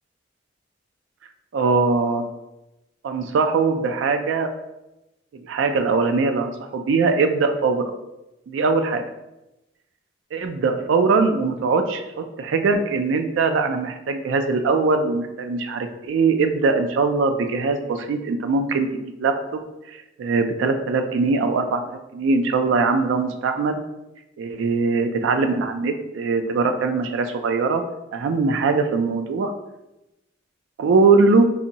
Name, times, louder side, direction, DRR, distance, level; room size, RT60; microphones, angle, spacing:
voice 1, 1.5-2.2 3.0-4.5 5.5-7.9 8.5-9.1 10.3-19.6 19.9-21.8 22.1-23.8 24.4-27.8 28.1-29.5 30.8-31.5, right 4 dB, 80° right, 6 dB, 0.3 m, -21 dB
4.1 x 2.6 x 2.7 m, 0.96 s
head